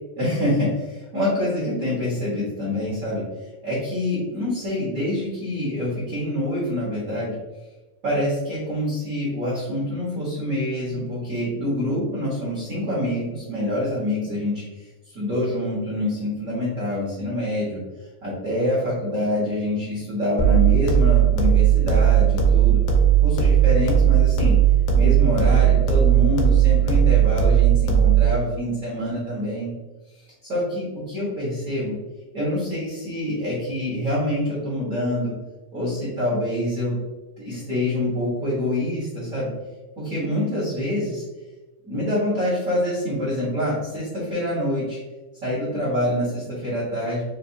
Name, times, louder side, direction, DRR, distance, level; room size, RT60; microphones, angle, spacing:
voice 1, 0.2-3.2 3.6-7.3 8.0-17.8 18.2-22.8 23.2-24.5 24.9-29.7 30.4-31.9 32.3-35.3 35.7-36.9 37.4-39.5 40.0-41.2 41.8-45.0 45.4-47.2, left 1 dB, 55° right, -9 dB, 0.9 m, -26 dB
sound 1, 20.4-28.4, right 9 dB, 85° left, 2.3 m, -17 dB
5.2 x 2.6 x 2.7 m, 1.2 s
omnidirectional pair, 3.7 m